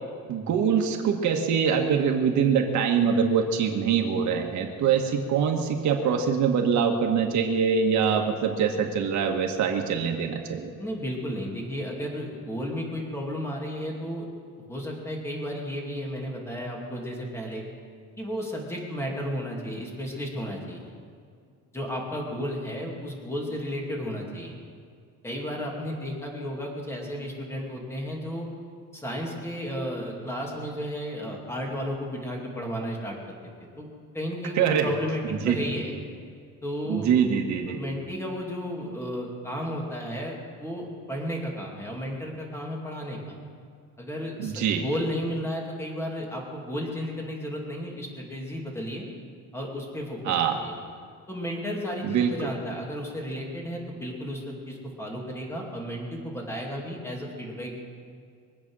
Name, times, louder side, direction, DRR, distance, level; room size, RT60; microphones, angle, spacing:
voice 1, 0.3-10.7 34.5-34.9 35.4-35.7 36.9-37.8 44.4-44.9 50.2-50.6 52.0-52.5, right 7 dB, 60° right, 2 dB, 1.7 m, -24 dB
voice 2, 10.8-14.3 14.7-17.6 18.2-20.8 21.7-24.5 25.2-28.5 28.9-33.2 33.8-33.9 34.1-35.9 36.6-37.1 37.7-43.4 44.0-49.0 49.5-50.3 50.6-50.7 51.3-57.8, equal, 10° left, -1 dB, 2.5 m, -33 dB
24.0 x 8.7 x 6.3 m, 2.2 s
cardioid pair, 165°, 32 cm